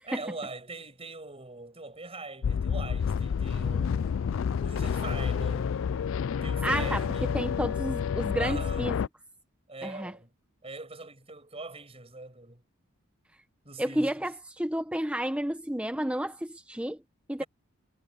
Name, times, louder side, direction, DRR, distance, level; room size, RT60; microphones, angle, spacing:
voice 1, 0.0-5.8 6.4-7.5 8.3-8.9 9.7-10.3 10.6-12.6 13.6-14.3 17.4-17.5, right 3 dB, 30° right, 5.8 m, -42 dB
sound 1, 2.4-9.1, left 7 dB, 65° left, 0.3 m, -29 dB
voice 2, 6.6-7.0 7.3-9.0 9.8-10.1 13.8-14.3 14.6-17.0 17.3-17.4, right 1 dB, 5° right, 1.0 m, -31 dB
head